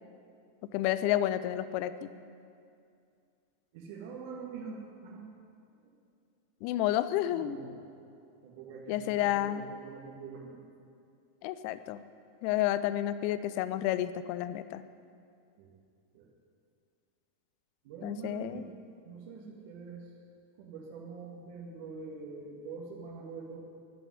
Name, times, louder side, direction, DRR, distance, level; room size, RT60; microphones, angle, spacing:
voice 1, 0.7-2.1 6.6-7.6 8.9-9.6 11.4-12.0 12.4-14.8 18.0-18.6, left 13 dB, 45° left, 14 dB, 0.6 m, -30 dB
voice 2, 3.7-5.3 7.3-7.8 8.4-10.6 15.6-15.7 16.1-16.3 17.8-18.7 19.0-20.2 20.6-23.6, right 5 dB, 50° right, -2 dB, 2.0 m, -44 dB
10.5 x 10.0 x 9.8 m, 2.4 s
figure-of-eight pair, 90°, 0 cm